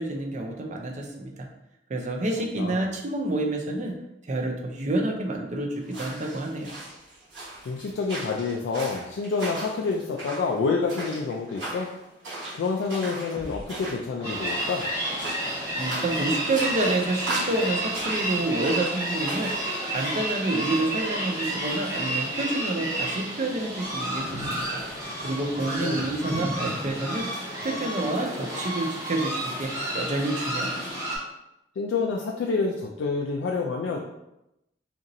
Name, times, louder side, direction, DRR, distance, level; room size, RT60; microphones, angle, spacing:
voice 1, 0.0-1.5 1.9-3.9 4.2-6.7 15.7-19.5 19.8-24.8 25.2-27.3 27.6-30.9, right 2 dB, 40° right, 1 dB, 0.5 m, -28 dB
voice 2, 2.6-2.9 7.7-11.9 12.5-14.9 25.8-26.0 31.8-34.0, left 4 dB, 80° left, 0 dB, 0.3 m, -28 dB
sound 1, 5.8-19.7, right 2 dB, 75° right, 1.2 m, -38 dB
sound 2, 13.3-16.6 16.8-17.4 17.7-18.3 18.6-18.7 19.0-19.2 19.5-19.6 19.9-20.1 20.4-20.5 20.7-20.9 21.3-21.4 21.6-21.8 22.1-22.2 22.5-22.7 23.0-23.1, left 1 dB, 30° left, 0.8 m, -45 dB
sound 3, 14.2-31.2, right 1 dB, 20° right, 1.0 m, -31 dB
2.9 x 2.6 x 2.6 m, 0.88 s
head